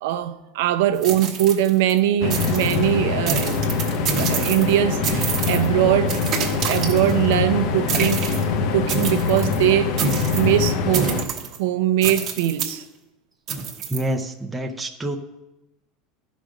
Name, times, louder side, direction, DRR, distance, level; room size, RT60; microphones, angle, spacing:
voice 1, 0.0-3.6 3.9-9.9 10.3-11.3 11.6-12.8, right 12 dB, 70° right, 0.6 m, -22 dB
sound 1, 1.0-2.0 2.3-2.8 3.3-4.8 5.0-5.7 6.1-7.3 7.9-8.4 8.9-9.6 10.0-10.5 10.9-11.6 12.0-12.8 13.5-14.0, right 6 dB, 30° right, 1.1 m, -27 dB
sound 2, 2.2-11.2, left 5 dB, 50° left, 0.8 m, -24 dB
voice 2, 13.9-15.2, right 1 dB, 5° right, 0.5 m, -27 dB
12.0 x 5.1 x 6.2 m
supercardioid pair, 170°, 0 cm